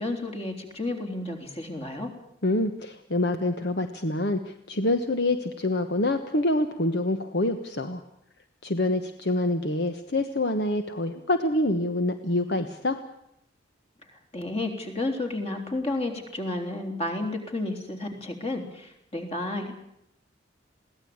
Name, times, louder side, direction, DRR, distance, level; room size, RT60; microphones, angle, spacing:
voice 1, 0.0-2.1 14.3-19.7, left 2 dB, 30° left, 4 dB, 3.7 m, -31 dB
voice 2, 2.4-8.0 8.6-13.0, left 1 dB, 60° left, 8 dB, 1.2 m, -26 dB
22.5 x 17.0 x 8.8 m, 0.79 s
head